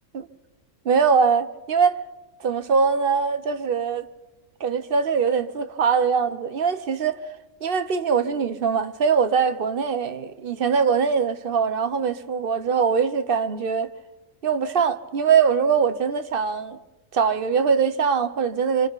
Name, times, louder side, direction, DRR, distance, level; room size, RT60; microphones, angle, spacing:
voice 1, 0.8-2.0 2.4-4.1 4.6-7.2 7.6-13.9 14.4-16.8 17.1-18.9, right 6 dB, 50° right, 1.0 m, -22 dB
27.0 x 25.5 x 4.0 m
omnidirectional pair, 1.3 m